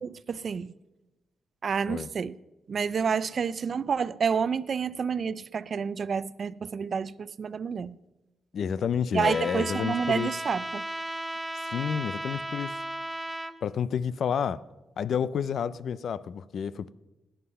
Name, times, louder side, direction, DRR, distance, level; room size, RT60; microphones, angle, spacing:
voice 1, 0.0-0.7 1.6-2.4 2.7-8.0 9.1-10.8, right 6 dB, 45° right, 0.4 m, -29 dB
voice 2, 8.5-10.3 11.7-12.8 13.6-14.6 15.0-16.9, left 7 dB, 60° left, 0.5 m, -29 dB
Trumpet, 9.2-13.5, right 1 dB, 5° right, 0.8 m, -35 dB
16.5 x 10.0 x 5.5 m
cardioid pair, 130°, 0 cm